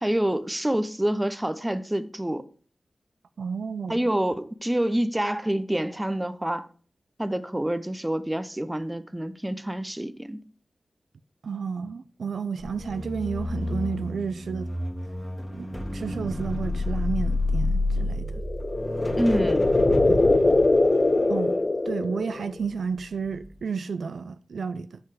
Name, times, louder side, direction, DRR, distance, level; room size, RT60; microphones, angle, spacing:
voice 1, 0.0-2.5 3.9-6.7 7.2-10.4 19.1-19.7, right 1 dB, 15° right, 0.7 m, -27 dB
voice 2, 3.4-4.0 11.4-14.7 15.5-18.4 20.1-20.2 21.3-21.6 21.9-25.0, right 5 dB, 90° right, 0.4 m, -31 dB
sound 1, 12.6-22.9 23.3-23.5, left 2 dB, 15° left, 1.5 m, -30 dB
sound 2, 18.3-22.6, left 2 dB, 40° left, 0.6 m, -22 dB
7.8 x 5.7 x 4.8 m
cardioid pair, 60°, 0 cm